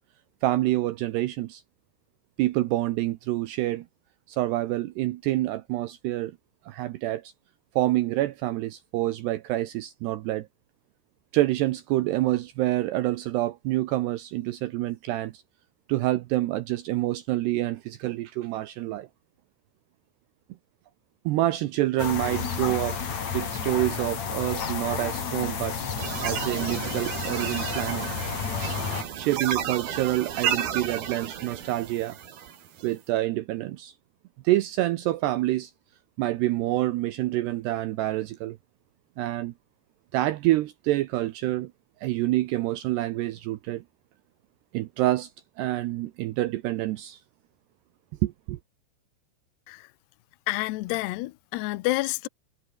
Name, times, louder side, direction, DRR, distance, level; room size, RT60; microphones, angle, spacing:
voice 1, 0.4-1.6 2.4-3.9 4.3-6.3 6.7-7.3 7.8-10.5 11.3-15.4 15.9-19.1 21.3-23.0 23.3-25.8 26.2-28.1 29.2-32.2 32.8-33.9 34.4-35.7 36.2-38.6 39.2-39.5 40.1-41.7 42.0-43.8 44.7-45.3 45.6-47.2 48.2-48.6, right 16 dB, 80° right, 2.5 m, -27 dB
sound 1, 22.0-29.0, left 6 dB, 40° left, 3.8 m, -31 dB
sound 2, 26.0-32.9, right 9 dB, 55° right, 4.2 m, -32 dB
voice 2, 50.5-52.3, left 20 dB, 85° left, 2.4 m, -29 dB
omnidirectional pair, 5.7 m